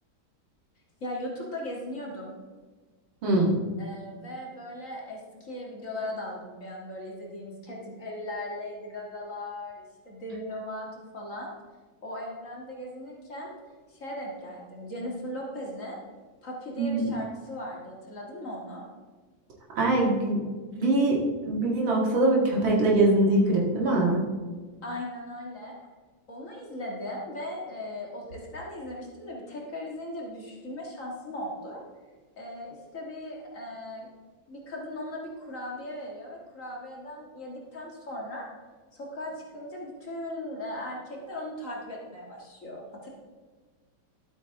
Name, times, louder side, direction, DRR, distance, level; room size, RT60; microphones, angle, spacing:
voice 1, 1.0-2.3 3.8-11.5 12.0-13.5 13.9-16.0 16.4-18.9 24.8-25.7 26.3-31.8 32.4-34.1 34.5-38.5 38.9-43.1, left 1 dB, 40° left, -2 dB, 2.0 m, -38 dB
voice 2, 3.2-3.5 16.8-17.1 19.7-20.4 20.8-21.2 21.5-24.2, right 2 dB, 70° right, -3 dB, 2.6 m, -23 dB
12.0 x 8.3 x 3.6 m, 1.4 s
omnidirectional pair, 2.2 m